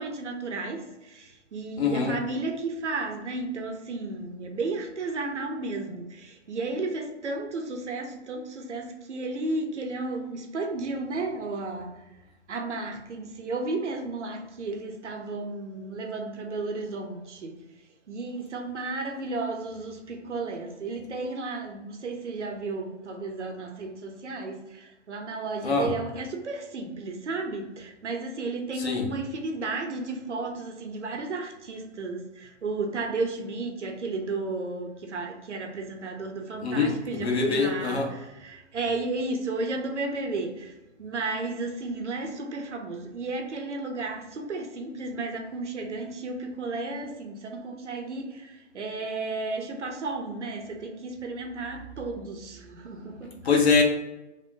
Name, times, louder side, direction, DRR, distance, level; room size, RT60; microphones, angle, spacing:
voice 1, 0.0-12.0 12.5-17.6 18.1-40.7 41.0-53.6, right 3 dB, 80° right, 1.0 m, -33 dB
voice 2, 1.8-2.2 25.6-25.9 28.8-29.1 36.6-38.1 53.4-53.8, left 4 dB, 65° left, 1.3 m, -24 dB
5.3 x 3.0 x 2.8 m
hypercardioid pair, 125°, 35 cm